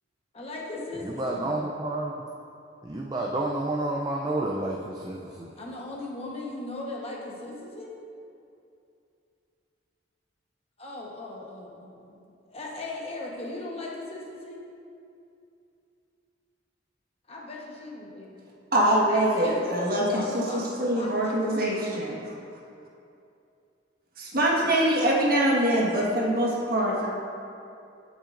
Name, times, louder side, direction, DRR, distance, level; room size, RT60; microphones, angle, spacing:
voice 1, 0.3-1.6 5.6-8.0 10.8-14.6 17.3-18.3 19.1-21.7 25.5-25.9, left 2 dB, 30° left, -2 dB, 1.1 m, -38 dB
voice 2, 1.0-2.1 2.8-5.5, right 2 dB, 20° right, -1 dB, 0.4 m, -30 dB
voice 3, 18.7-22.3 24.2-27.1, right 1 dB, 50° right, -4 dB, 1.5 m, -24 dB
15.0 x 6.1 x 2.5 m, 2.6 s
head